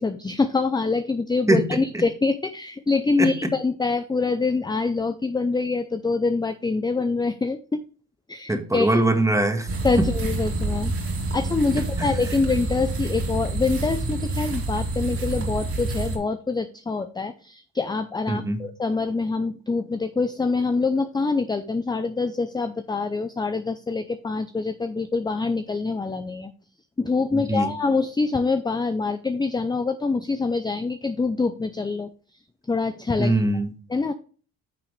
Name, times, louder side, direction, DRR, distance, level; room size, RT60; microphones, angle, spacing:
voice 1, 0.0-7.8 8.3-8.9 9.8-10.9 11.3-26.5 27.0-32.1 32.7-33.4 33.9-34.1, left 4 dB, 15° left, 9 dB, 0.6 m, -25 dB
voice 2, 1.5-2.0 3.2-3.5 8.5-9.7 10.0-10.1 12.0-12.1 18.3-18.6 27.3-27.7 33.2-33.7, right 2 dB, 10° right, 6 dB, 1.7 m, -22 dB
sound 1, 9.7-16.2, right 2 dB, 50° right, 2.9 m, -27 dB
10.0 x 6.0 x 3.3 m, 0.40 s
cardioid pair, 90°, 30 cm